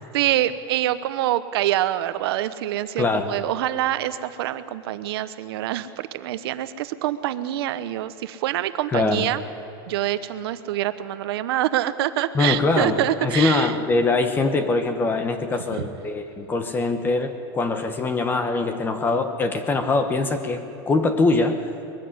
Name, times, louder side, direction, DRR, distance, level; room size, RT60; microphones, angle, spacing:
voice 1, 0.1-9.4 9.9-13.7, right 13 dB, 80° right, 12 dB, 1.1 m, -25 dB
voice 2, 3.0-3.3 8.9-9.3 12.3-21.6, left 3 dB, 15° left, 9 dB, 1.0 m, -23 dB
21.5 x 15.0 x 9.8 m, 3.0 s
supercardioid pair, 170°, 13 cm